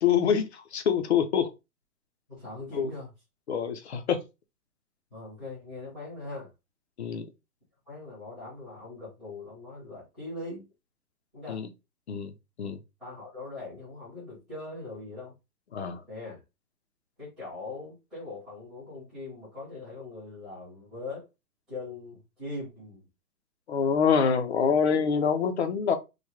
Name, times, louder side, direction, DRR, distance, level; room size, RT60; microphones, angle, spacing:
voice 1, 0.0-1.5 2.8-2.9 3.5-4.2 7.0-7.3 11.5-11.7 12.1-12.3 12.6-12.8 15.7-16.0 23.7-26.0, left 7 dB, 45° left, 0.4 m, -25 dB
voice 2, 2.3-3.1 5.1-6.5 7.8-10.7 11.3-11.6 12.6-12.7 13.0-15.3 16.1-16.4 17.2-21.3 21.7-23.0, left 2 dB, ahead, 0.6 m, -41 dB
3.2 x 2.0 x 3.4 m
hypercardioid pair, 165°, 49 cm